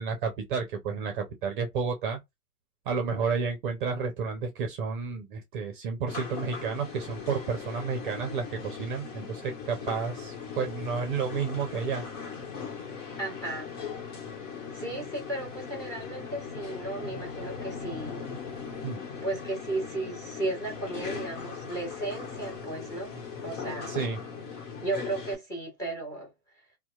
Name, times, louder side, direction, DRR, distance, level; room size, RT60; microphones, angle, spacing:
voice 1, 0.0-2.2 2.9-12.0 18.8-19.0 23.9-24.2, right 5 dB, 35° right, 0.6 m, -31 dB
sound 1, 6.1-25.3, left 6 dB, 50° left, 1.1 m, -39 dB
voice 2, 13.2-13.7 14.7-18.2 19.2-23.2 23.4-24.0 24.8-26.3, right 2 dB, 5° left, 0.9 m, -35 dB
2.7 x 2.2 x 2.2 m
hypercardioid pair, 125°, 46 cm